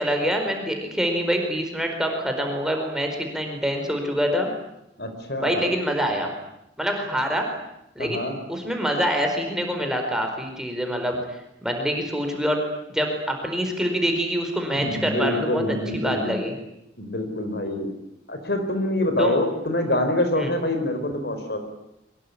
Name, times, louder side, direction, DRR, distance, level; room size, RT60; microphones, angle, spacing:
voice 1, 0.0-4.5 5.4-6.3 6.8-7.5 7.9-8.2 8.5-12.6 12.9-15.6 15.9-16.5 19.2-19.3 20.3-20.5, equal, 5° right, 3 dB, 4.7 m, -25 dB
voice 2, 5.0-5.7 8.0-8.4 14.7-16.4 17.0-17.9 18.3-21.6, left 1 dB, 60° left, 7 dB, 4.6 m, -26 dB
24.0 x 21.5 x 9.9 m, 0.84 s
head